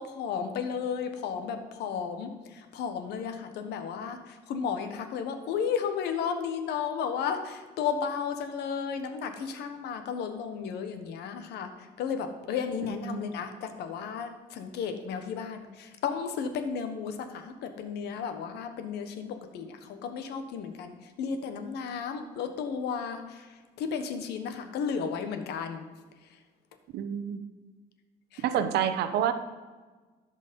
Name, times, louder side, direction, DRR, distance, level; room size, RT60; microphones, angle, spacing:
voice 1, 0.0-11.7 12.0-20.9 21.2-23.5 23.8-25.8 28.3-28.4, left 6 dB, 80° left, 7 dB, 1.3 m, -33 dB
voice 2, 12.9-13.2 26.9-27.4 28.4-29.3, right 9 dB, 75° right, 10 dB, 0.8 m, -28 dB
14.0 x 5.3 x 5.3 m, 1.3 s
cardioid pair, 110°, 17 cm